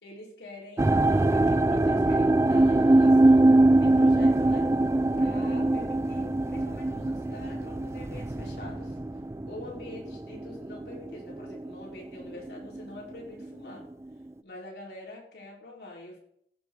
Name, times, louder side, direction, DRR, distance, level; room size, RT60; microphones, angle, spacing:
voice 1, 0.0-3.5 3.8-4.7 5.2-9.0 9.5-13.9 14.4-16.2, left 1 dB, 65° left, -2 dB, 4.6 m, -45 dB
sound 1, 0.8-11.9 12.2-12.8 13.4-13.5, right 2 dB, 15° right, 0.3 m, -23 dB
15.5 x 6.3 x 4.7 m, 0.67 s
head